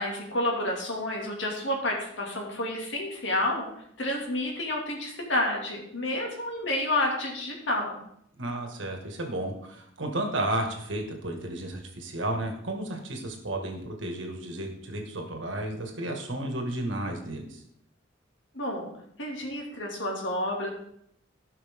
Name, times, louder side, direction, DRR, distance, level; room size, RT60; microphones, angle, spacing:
voice 1, 0.0-3.7 4.0-8.0 18.5-18.9 19.2-20.7, left 1 dB, 65° left, 0 dB, 2.4 m, -30 dB
voice 2, 8.4-17.6, right 1 dB, 70° right, 2 dB, 1.8 m, -33 dB
16.0 x 5.8 x 3.7 m, 0.72 s
head